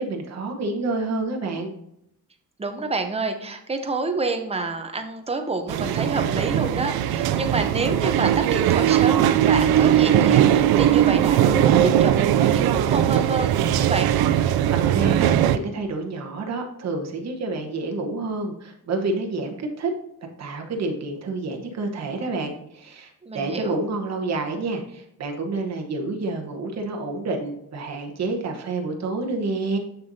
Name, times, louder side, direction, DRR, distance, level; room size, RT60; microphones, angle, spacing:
voice 1, 0.0-1.7 14.7-19.9 20.4-29.8, right 3 dB, 45° right, 2 dB, 1.1 m, -28 dB
voice 2, 2.6-14.1 23.2-23.8, right 3 dB, 15° right, 6 dB, 0.7 m, -28 dB
sound 1, 5.7-15.6, right 10 dB, 80° right, 0.5 m, -19 dB
6.9 x 6.6 x 2.7 m, 0.77 s
wide cardioid pair, 155°, 37 cm